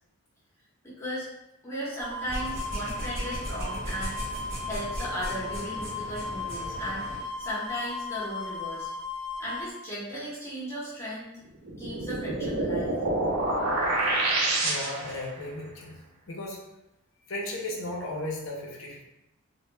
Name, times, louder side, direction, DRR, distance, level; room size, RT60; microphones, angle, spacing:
voice 1, 0.8-1.3 1.6-4.2 4.7-8.9 9.4-11.3 11.8-13.0 13.2-13.4, equal, 10° left, -9 dB, 0.7 m, -36 dB
sound 1, 2.0-9.7, left 3 dB, 20° right, 0.6 m, -36 dB
sound 2, 2.2-7.2, equal, 65° right, 1.0 m, -37 dB
sound 3, 11.6-15.3, right 2 dB, 85° right, 0.6 m, -27 dB
voice 2, 14.6-16.0 16.3-16.6 17.3-19.0, left 1 dB, 65° left, -2 dB, 0.5 m, -35 dB
2.0 x 2.0 x 3.1 m, 0.90 s
head